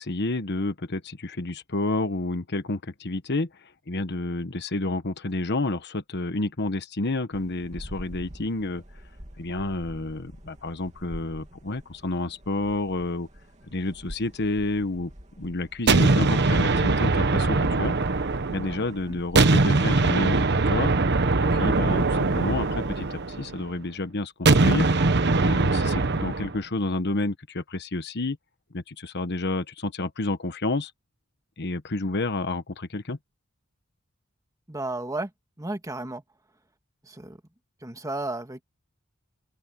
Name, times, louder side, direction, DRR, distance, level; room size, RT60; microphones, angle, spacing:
voice 1, 0.0-8.8 9.4-13.3 13.7-15.1 15.4-18.0 18.5-20.9 21.4-24.9 25.4-28.4 28.7-30.9 31.6-33.2, left 2 dB, 55° left, 1.2 m, -30 dB
sound 1, 7.3-20.3, equal, 35° right, 2.7 m, -45 dB
sound 2, 15.9-18.9 19.3-23.6 24.4-26.6, right 3 dB, 55° right, 1.1 m, -22 dB
voice 2, 34.7-35.3 35.6-36.2 37.0-37.4 37.8-38.6, right 2 dB, 15° right, 2.0 m, -33 dB
head